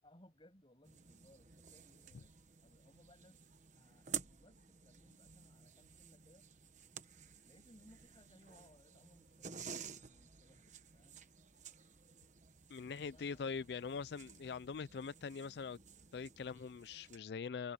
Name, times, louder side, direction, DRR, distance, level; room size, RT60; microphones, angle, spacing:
voice 1, 0.0-2.3 2.6-6.5 7.4-9.7 10.1-11.2 12.8-13.5, left 1 dB, 25° left, 7.7 m, -66 dB
sound 1, 0.8-17.2, right 7 dB, 40° right, 1.2 m, -52 dB
voice 2, 12.7-15.8 16.1-17.7, left 5 dB, 60° left, 0.4 m, -43 dB
head